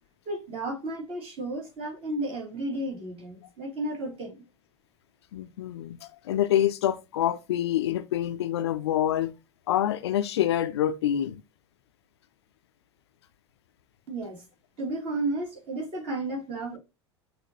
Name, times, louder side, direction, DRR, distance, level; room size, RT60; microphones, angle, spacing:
voice 1, 0.3-4.4 14.1-14.4 14.8-16.8, right 2 dB, 40° right, 2.4 m, -33 dB
voice 2, 5.3-9.3 9.7-11.4, left 11 dB, 65° left, 0.4 m, -26 dB
5.9 x 2.7 x 2.7 m
figure-of-eight pair, 75°, 15 cm